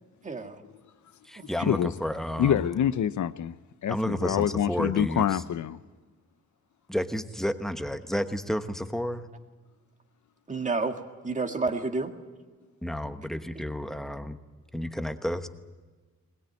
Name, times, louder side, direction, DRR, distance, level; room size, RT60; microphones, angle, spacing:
voice 1, 0.2-0.6 1.4-1.6 10.5-12.1, right 3 dB, 25° right, 1.7 m, -30 dB
voice 2, 1.3-2.6 3.9-5.4 6.9-9.3 12.8-14.4 14.7-15.5, equal, ahead, 1.1 m, -31 dB
voice 3, 2.4-3.6 3.8-5.8, left 9 dB, 80° left, 0.8 m, -26 dB
21.5 x 21.0 x 9.3 m
wide cardioid pair, 170°, 29 cm